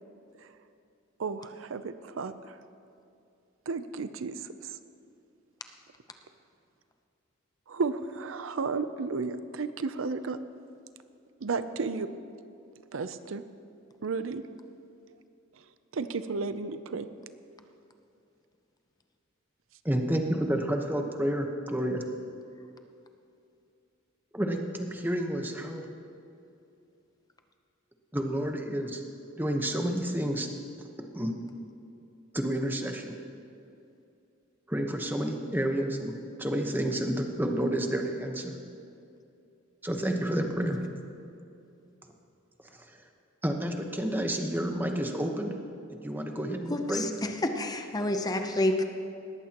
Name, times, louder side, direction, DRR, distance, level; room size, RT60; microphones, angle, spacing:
voice 1, 1.2-2.6 3.7-4.8 7.7-10.4 11.4-12.1 12.9-13.4 14.0-14.4 15.9-17.1, right 4 dB, 80° right, 12 dB, 0.6 m, -33 dB
voice 2, 19.8-22.0 24.3-25.9 28.1-29.0 29.4-30.5 31.1-31.3 32.3-33.1 34.7-38.6 39.8-40.8 43.4-45.6 46.0-47.1, right 1 dB, 10° right, 3 dB, 1.0 m, -30 dB
voice 3, 46.7-48.8, left 1 dB, 20° left, 6 dB, 0.7 m, -29 dB
20.0 x 14.5 x 3.0 m, 2.6 s
head